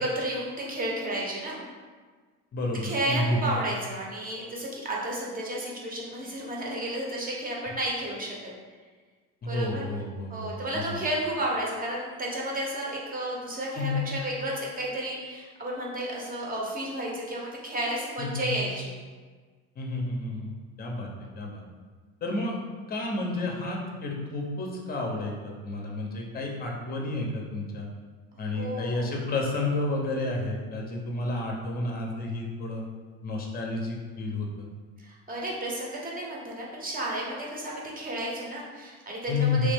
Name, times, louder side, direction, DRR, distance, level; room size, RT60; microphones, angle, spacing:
voice 1, 0.0-1.6 2.8-8.3 9.5-9.9 10.3-18.9 28.5-29.1 35.0-39.7, right 1 dB, 25° right, -3 dB, 0.8 m, -32 dB
voice 2, 2.5-3.5 9.4-11.0 13.8-14.0 18.2-18.6 19.8-20.5 20.8-21.1 21.4-21.6 22.2-22.6 22.9-27.9 28.4-32.8 33.2-34.7 39.3-39.7, left 2 dB, 25° left, 0 dB, 0.7 m, -30 dB
3.3 x 2.5 x 3.4 m, 1.5 s
cardioid pair, 115°, 37 cm